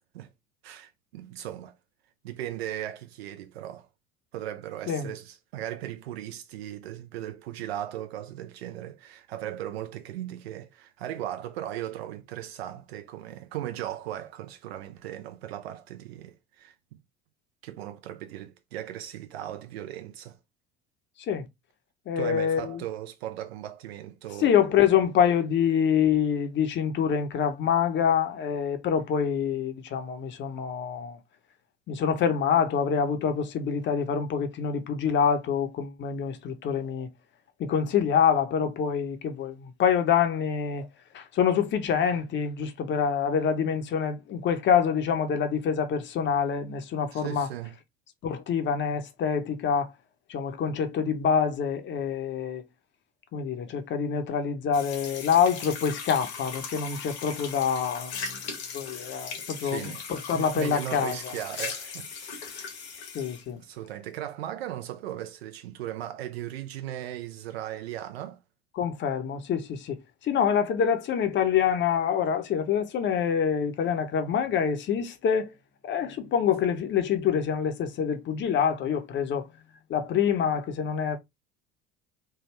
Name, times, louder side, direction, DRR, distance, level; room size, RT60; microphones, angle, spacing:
voice 1, 0.6-1.8 2.2-3.9 4.3-17.0 17.6-20.4 22.2-24.6 47.1-47.8 59.6-60.0 60.3-62.4 63.5-68.4, right 12 dB, 70° right, 0.6 m, -37 dB
voice 2, 22.1-22.8 24.4-31.2 31.9-37.1 37.6-40.9 41.1-47.5 48.2-49.9 50.3-52.6 53.3-58.4 58.7-61.2 63.1-63.6 68.8-75.5 75.8-79.5 79.9-81.2, left 7 dB, 35° left, 0.7 m, -26 dB
sound 1, 54.7-63.5, left 5 dB, 70° left, 1.1 m, -38 dB
3.4 x 2.2 x 3.1 m
figure-of-eight pair, 65°, 33 cm